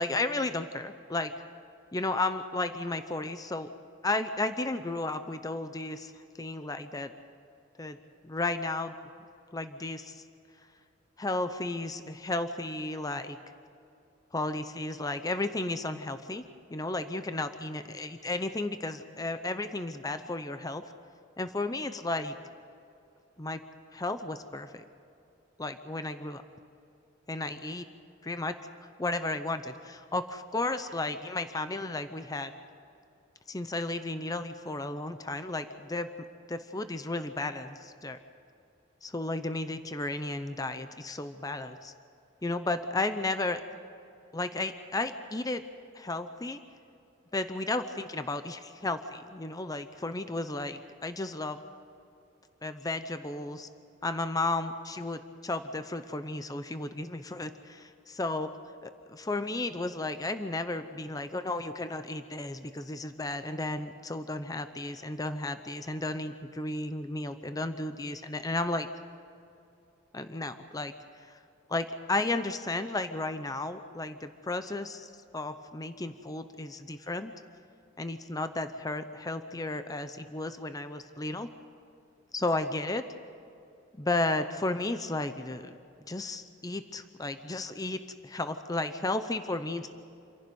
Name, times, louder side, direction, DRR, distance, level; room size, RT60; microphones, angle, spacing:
voice 1, 0.0-1.3 1.9-3.7 4.0-6.1 6.4-7.1 7.8-8.0 8.2-8.9 9.5-10.2 11.2-13.4 14.3-16.4 16.7-20.8 21.4-22.3 23.4-23.6 23.9-24.8 25.6-26.4 27.3-27.9 28.3-28.5 29.0-32.5 33.5-36.1 36.5-38.2 39.0-41.9 42.4-43.6 44.3-45.6 45.9-46.6 47.3-51.6 52.6-53.7 54.0-58.5 58.8-68.9 70.1-70.9 71.3-71.4 71.7-77.3 78.0-81.5 82.3-83.0 84.0-85.8 86.1-89.9, left 2 dB, 20° left, 9 dB, 0.7 m, -33 dB
27.5 x 11.5 x 9.4 m, 2.6 s
head